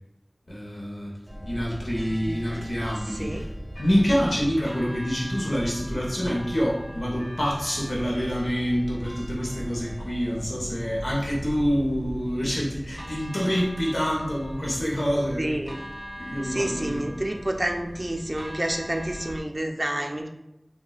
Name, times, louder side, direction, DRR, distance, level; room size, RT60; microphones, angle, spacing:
voice 1, 0.5-1.1 1.5-3.5 3.8-15.6 16.2-17.1, equal, 80° left, -5 dB, 0.7 m, -26 dB
sound 1, 1.3-19.4, equal, 5° right, 0.8 m, -38 dB
voice 2, 2.1-2.7 3.1-3.5 15.4-15.8 16.4-20.3, right 1 dB, 40° right, 3 dB, 0.4 m, -29 dB
3.8 x 2.1 x 2.3 m, 0.89 s
wide cardioid pair, 40°, 0 cm